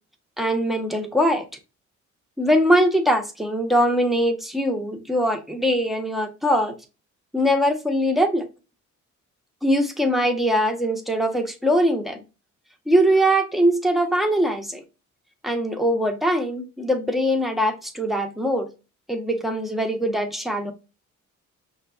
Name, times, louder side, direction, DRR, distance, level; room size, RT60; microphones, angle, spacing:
voice 1, 0.4-1.5 2.4-6.7 7.3-8.5 9.6-12.2 12.9-14.8 15.4-18.7 19.1-20.7, equal, ahead, 5 dB, 0.7 m, -22 dB
5.8 x 2.2 x 2.4 m, 0.30 s
cardioid pair, 90°, 30 cm